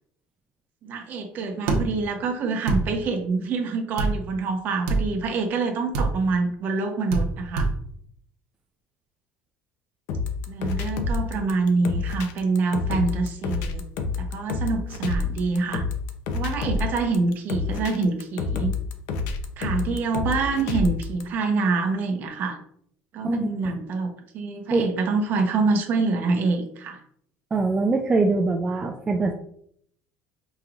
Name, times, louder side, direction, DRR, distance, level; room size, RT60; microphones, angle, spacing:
voice 1, 0.8-7.7 10.5-13.8 14.2-15.8 16.3-18.7 19.6-22.6 23.1-27.0, right 4 dB, 45° right, 4 dB, 0.9 m, -26 dB
sound 1, 1.7-1.8 2.7-2.8 4.0-4.1 4.9-5.0 5.9-6.1 7.1-7.3 7.5-7.7, right 3 dB, 75° right, 1.0 m, -22 dB
sound 2, 10.1-21.2, left 4 dB, 70° left, 0.6 m, -28 dB
voice 2, 23.2-23.7 24.7-24.9 27.5-29.3, right 3 dB, 20° right, 2 dB, 0.4 m, -23 dB
5.5 x 2.9 x 2.4 m, 0.66 s
cardioid pair, 140°, 4 cm